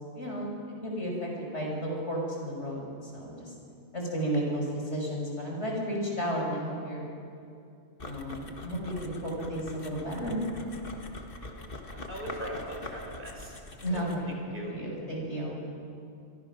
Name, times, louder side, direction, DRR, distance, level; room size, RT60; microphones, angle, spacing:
voice 1, 0.1-3.5 3.9-7.1 8.0-10.4 13.8-14.4 14.7-15.6, equal, 80° left, -1 dB, 6.1 m, -33 dB
sound 1, 8.0-14.3, left 2 dB, 50° left, 1.8 m, -44 dB
voice 2, 11.4-13.6 13.9-14.0 14.5-14.7, right 1 dB, 45° right, 0 dB, 5.1 m, -40 dB
27.5 x 22.5 x 6.1 m, 2.5 s
omnidirectional pair, 1.2 m